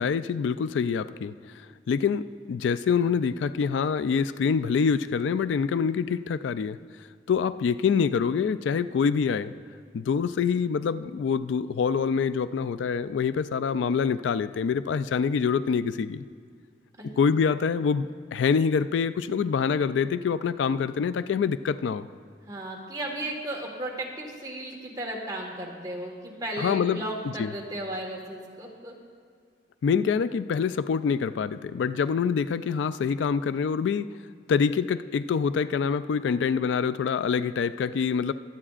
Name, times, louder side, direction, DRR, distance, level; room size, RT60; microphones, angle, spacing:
voice 1, 0.0-1.3 1.9-6.8 7.3-9.5 9.9-16.2 17.2-22.1 26.6-27.0 27.4-27.5 29.8-34.1 34.5-38.3, left 6 dB, 85° left, 14 dB, 0.3 m, -25 dB
voice 2, 22.4-28.9, right 1 dB, 20° right, -1 dB, 1.6 m, -35 dB
22.0 x 8.7 x 2.5 m, 2.1 s
head